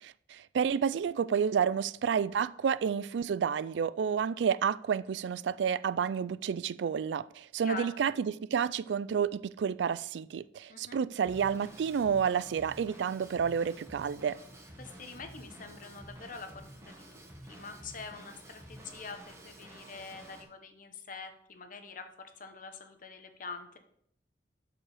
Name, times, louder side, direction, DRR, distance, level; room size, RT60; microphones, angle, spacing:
voice 1, 0.0-14.4, right 7 dB, 85° right, 0.3 m, -30 dB
voice 2, 7.6-8.0 10.7-11.0 14.8-16.5 16.9-23.8, left 4 dB, 50° left, 1.0 m, -45 dB
Drum kit / Drum, 11.2-20.4, right 1 dB, 15° right, 1.5 m, -50 dB
12.0 x 4.8 x 4.9 m
head